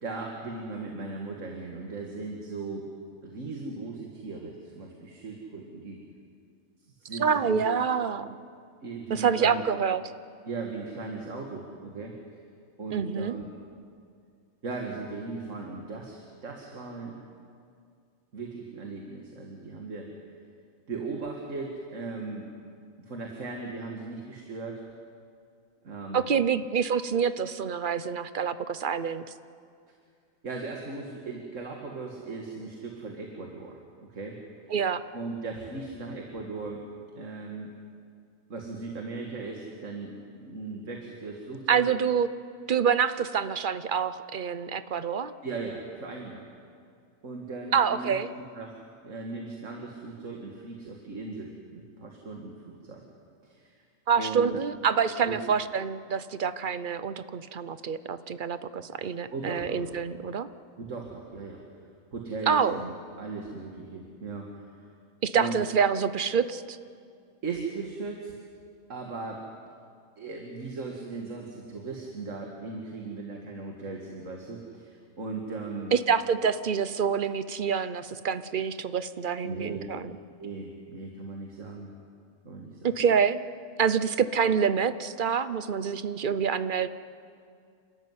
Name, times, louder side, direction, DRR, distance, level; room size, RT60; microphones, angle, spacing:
voice 1, 0.0-2.9 3.2-6.0 7.0-7.7 8.8-9.6 10.5-12.2 12.8-13.4 14.6-17.2 18.3-20.1 20.9-22.5 23.1-24.8 25.8-26.3 30.4-34.4 35.1-36.8 37.2-37.7 38.5-41.8 45.4-46.4 47.2-48.1 48.5-53.0 53.4-53.8 54.2-54.6 55.2-55.4 59.3-59.9 60.8-61.6 62.1-64.6 65.4-65.6 67.4-68.3 68.9-69.5 70.2-75.9 79.4-79.9 80.4-81.9 82.5-82.9, right 3 dB, 70° right, 1 dB, 2.3 m, -38 dB
voice 2, 7.2-8.4 9.1-10.0 12.9-13.3 26.1-29.2 34.7-35.0 41.7-42.3 42.7-45.3 47.7-48.3 54.1-60.5 62.5-62.8 65.2-66.8 75.9-80.1 82.8-83.4 83.8-86.9, right 6 dB, 45° right, 13 dB, 0.8 m, -26 dB
29.0 x 13.5 x 9.6 m, 2.3 s
omnidirectional pair, 1.4 m